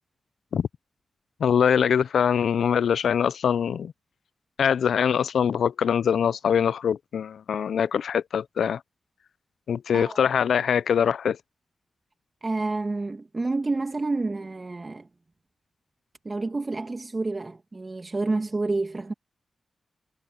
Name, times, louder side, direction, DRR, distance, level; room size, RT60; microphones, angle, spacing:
voice 1, 1.4-3.9 4.6-8.8 9.7-11.4, left 7 dB, 85° left, 0.4 m, -23 dB
voice 2, 12.4-15.1 16.2-19.1, right 3 dB, 40° right, 2.2 m, -29 dB
cardioid pair, 50°, 0 cm